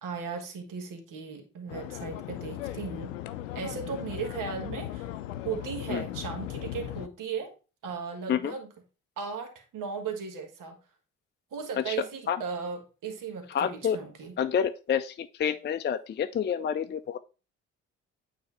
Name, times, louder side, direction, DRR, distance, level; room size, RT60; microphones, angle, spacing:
voice 1, 0.0-3.1 3.5-5.2 5.4-7.5 7.8-8.7 9.2-10.8 11.5-14.4, right 6 dB, 60° right, 4 dB, 1.6 m, -36 dB
sound 1, 1.7-7.1, left 13 dB, 85° left, 0.5 m, -37 dB
voice 2, 13.5-14.0 14.4-17.2, left 8 dB, 30° left, 9 dB, 0.5 m, -28 dB
8.6 x 3.3 x 4.2 m, 0.33 s
hypercardioid pair, 40°, 37 cm